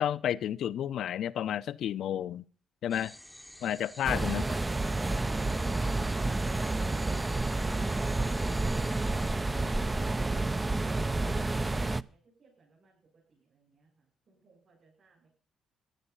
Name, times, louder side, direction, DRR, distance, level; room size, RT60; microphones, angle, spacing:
voice 1, 0.0-2.4 2.8-3.1 3.6-4.5, left 10 dB, 70° left, 0.6 m, -31 dB
sound 1, 2.9-9.3, left 1 dB, ahead, 0.9 m, -50 dB
sound 2, 4.0-12.0, right 2 dB, 20° right, 0.5 m, -30 dB
voice 2, 9.5-15.3, right 5 dB, 50° right, 7.5 m, -61 dB
14.5 x 10.5 x 5.5 m
cardioid pair, 90°, 0 cm